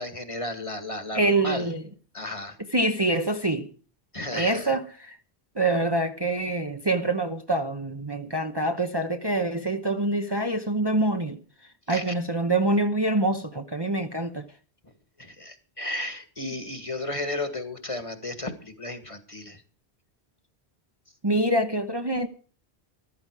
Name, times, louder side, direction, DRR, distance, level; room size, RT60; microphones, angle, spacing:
voice 1, 0.0-1.7 2.1-2.6 4.1-4.7 11.9-12.1 15.2-19.6, left 1 dB, 30° left, 2.0 m, -34 dB
voice 2, 1.1-1.8 2.7-3.7 4.3-5.2 5.5-11.4 11.9-14.5 16.4-16.5 21.2-22.3, right 2 dB, 25° right, 0.9 m, -25 dB
14.5 x 13.0 x 4.8 m
omnidirectional pair, 1.1 m